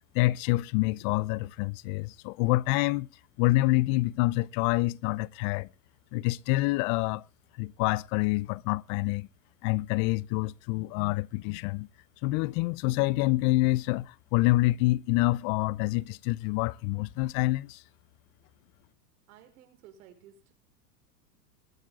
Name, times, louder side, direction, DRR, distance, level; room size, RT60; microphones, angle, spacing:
voice 1, 0.1-3.1 3.4-5.7 6.1-7.2 7.6-9.3 9.6-11.9 12.2-17.8, left 20 dB, 40° left, 0.7 m, -27 dB
voice 2, 19.3-20.5, right 9 dB, 65° right, 5.2 m, -54 dB
22.0 x 9.3 x 3.8 m
hypercardioid pair, 115°, 47 cm